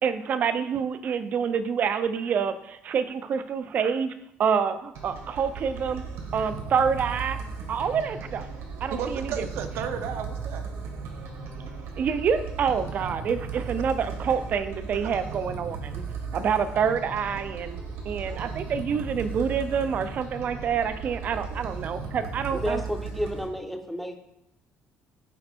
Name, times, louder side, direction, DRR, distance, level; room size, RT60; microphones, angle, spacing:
voice 1, 0.0-4.1 4.4-6.0 6.3-7.4 7.7-8.5 8.8-9.4 12.0-16.0 16.3-17.8 18.1-22.8, right 6 dB, 40° right, 11 dB, 0.5 m, -27 dB
sound 1, 4.9-23.5, right 5 dB, 85° right, 1.9 m, -36 dB
voice 2, 8.9-10.8 16.3-16.4 18.2-18.5 21.5-21.6 22.0-22.1, right 7 dB, 70° right, 7 dB, 0.7 m, -35 dB
voice 3, 22.5-24.2, equal, ahead, 5 dB, 0.6 m, -31 dB
8.0 x 4.4 x 4.4 m, 0.80 s
cardioid pair, 170°, 5 cm